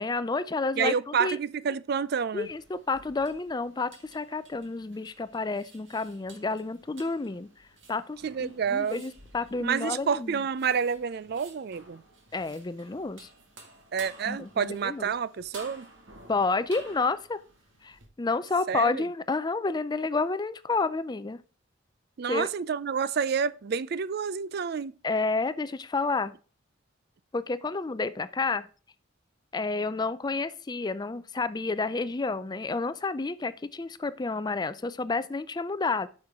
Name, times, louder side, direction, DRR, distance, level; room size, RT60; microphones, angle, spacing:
voice 1, 0.0-1.4 2.3-7.5 7.9-10.4 12.3-13.3 14.3-15.1 16.3-17.4 17.8-21.4 22.3-22.5 25.0-26.3 27.3-28.7 29.5-36.1, left 3 dB, 20° left, 0.4 m, -30 dB
voice 2, 0.8-2.5 8.2-9.0 9.6-12.0 13.9-15.9 18.7-19.0 22.2-24.9, right 6 dB, 55° right, 0.4 m, -29 dB
sound 1, 2.4-18.1, right 2 dB, 70° right, 2.0 m, -52 dB
8.4 x 6.5 x 3.6 m
head